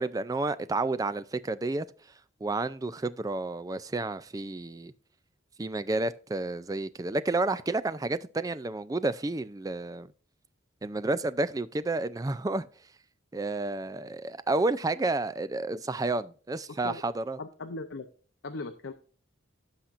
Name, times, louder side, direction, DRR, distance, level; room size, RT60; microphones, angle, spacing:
voice 1, 0.0-1.9 2.4-4.9 5.6-10.1 10.8-12.7 13.3-17.4, right 2 dB, 20° right, 0.3 m, -30 dB
voice 2, 16.7-17.0 17.4-18.1 18.4-18.9, left 3 dB, 70° left, 0.7 m, -38 dB
16.0 x 5.8 x 2.5 m
head